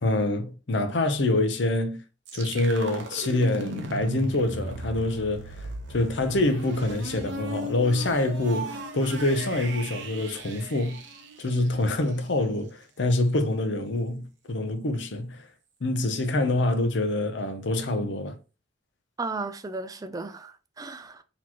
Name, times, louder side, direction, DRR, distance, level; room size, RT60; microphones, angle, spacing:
voice 1, 0.0-2.0 2.3-11.0 11.4-15.5 15.8-18.4, left 2 dB, 70° left, 0.7 m, -26 dB
sound 1, 2.3-12.1, right 2 dB, 75° right, 0.8 m, -37 dB
voice 2, 19.2-21.2, right 3 dB, 20° right, 0.3 m, -35 dB
4.1 x 3.0 x 2.9 m
head